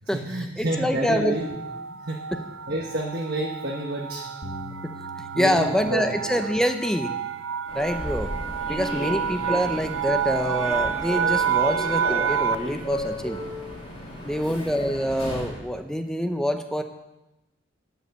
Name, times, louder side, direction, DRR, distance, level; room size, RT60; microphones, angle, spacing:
voice 1, 0.0-1.6 1.9-4.6 5.3-6.2 8.7-9.3 14.1-14.5, right 1 dB, 50° right, -2 dB, 1.4 m, -30 dB
voice 2, 0.6-1.3 4.8-7.1 7.7-8.3 8.7-13.4 14.2-16.8, equal, 5° left, 7 dB, 0.8 m, -26 dB
sound 1, 0.7-12.8, right 8 dB, 80° right, 0.6 m, -29 dB
Bass guitar, 4.4-10.7, left 1 dB, 55° left, 1.2 m, -47 dB
Human voice / Subway metro underground, 7.6-15.6, left 1 dB, 30° left, 4.0 m, -34 dB
12.0 x 8.3 x 6.9 m, 0.98 s
head